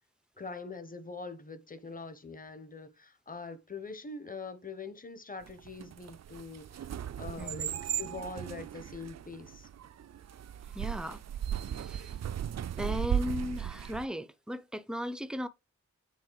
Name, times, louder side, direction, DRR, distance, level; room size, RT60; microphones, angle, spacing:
voice 1, 0.4-9.7, left 3 dB, 25° left, 1.1 m, -43 dB
sound 1, 5.5-14.0, right 9 dB, 55° right, 0.5 m, -36 dB
voice 2, 7.4-7.7 10.7-11.2 11.7-12.1 12.7-15.5, equal, ahead, 0.6 m, -36 dB
8.6 x 3.8 x 4.7 m
wide cardioid pair, 110°, 32 cm